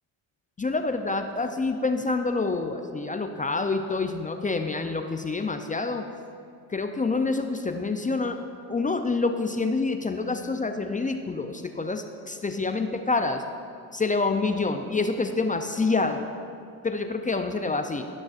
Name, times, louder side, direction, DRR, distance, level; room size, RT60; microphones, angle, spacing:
voice 1, 0.6-6.0 6.7-8.4 8.7-13.4 13.9-16.3 16.8-18.1, left 3 dB, 15° left, 6 dB, 0.4 m, -27 dB
17.0 x 6.2 x 2.5 m, 2.4 s
supercardioid pair, 70°, 49 cm